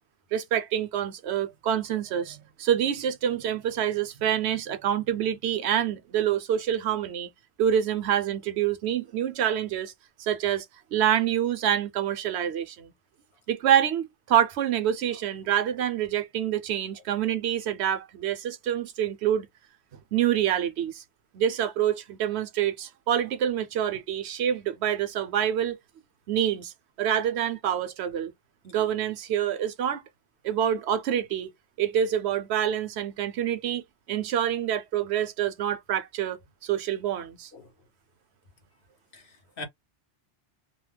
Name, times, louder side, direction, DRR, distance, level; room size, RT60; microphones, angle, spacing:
voice 1, 0.3-7.3 7.6-9.9 10.2-10.7 10.9-12.9 13.5-19.5 20.1-21.0 21.3-25.8 26.3-26.7 27.0-28.3 28.6-30.0 30.4-31.5 31.8-37.5, right 10 dB, 75° right, 0.9 m, -26 dB
voice 2, 39.1-39.6, left 2 dB, 55° left, 1.0 m, -41 dB
2.8 x 2.0 x 3.3 m
omnidirectional pair, 1.1 m